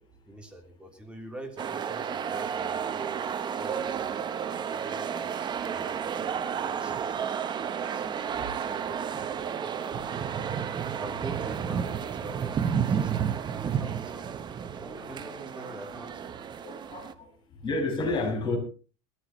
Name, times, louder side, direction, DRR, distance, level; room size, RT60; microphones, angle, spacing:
voice 1, 0.3-3.2 3.6-8.2 8.5-14.4 14.8-16.3, right 1 dB, 5° right, 3.3 m, -45 dB
sound 1, 1.6-17.1, right 8 dB, 25° right, 0.8 m, -32 dB
voice 2, 16.6-17.3 17.6-18.6, left 2 dB, 30° left, 5.9 m, -31 dB
20.0 x 14.0 x 3.1 m
supercardioid pair, 140°, 17 cm